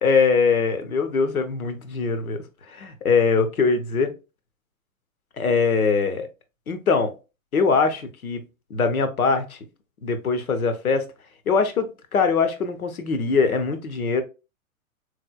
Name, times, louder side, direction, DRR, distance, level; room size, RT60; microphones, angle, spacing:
voice 1, 0.0-2.4 2.7-4.1 5.4-6.3 6.7-7.1 7.5-8.4 8.7-9.6 10.0-11.1 11.5-14.2, left 5 dB, 80° left, 0.9 m, -22 dB
3.8 x 3.3 x 2.2 m
figure-of-eight pair, 110°, 42 cm